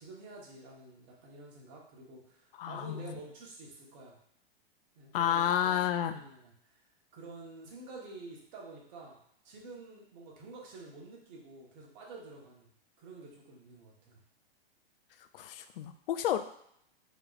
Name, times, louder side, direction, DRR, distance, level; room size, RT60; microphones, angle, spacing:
voice 1, 0.0-4.2 4.9-6.8 7.1-9.2 9.4-14.2, right 3 dB, 45° right, -2 dB, 1.4 m, -49 dB
voice 2, 2.6-3.1 5.1-6.2 15.3-16.4, left 10 dB, 65° left, 9 dB, 0.4 m, -30 dB
4.9 x 3.0 x 2.5 m, 0.70 s
hypercardioid pair, 140°, 30 cm